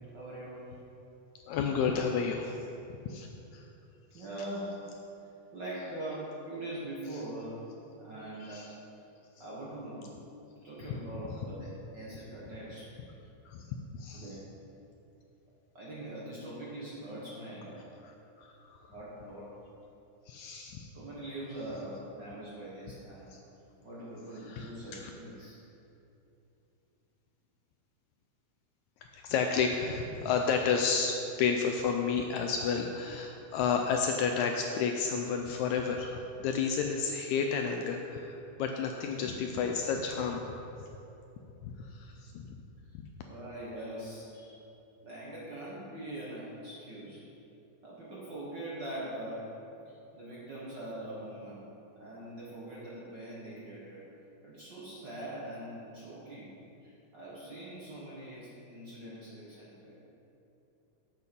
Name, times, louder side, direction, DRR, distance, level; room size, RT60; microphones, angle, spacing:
voice 1, 0.1-0.7 4.1-4.8 5.5-7.7 8.0-8.7 9.4-10.1 10.6-12.9 14.1-14.5 15.7-17.9 18.9-19.6 20.9-23.4 23.8-25.6 43.2-44.6 45.0-47.2 47.8-49.5 49.9-51.6 52.0-54.0 54.4-56.5 56.8-60.0, right 1 dB, 50° right, -7 dB, 1.4 m, -42 dB
voice 2, 1.5-2.6 3.1-3.7 4.1-4.3 8.4-8.8 13.5-13.6 13.9-14.4 18.0-18.9 20.3-20.9 23.3-23.4 24.5-25.1 29.0-40.5 41.6-42.6 42.9-43.1, left 6 dB, 80° left, 3 dB, 1.7 m, -31 dB
8.3 x 7.9 x 5.2 m, 2.9 s
omnidirectional pair, 3.7 m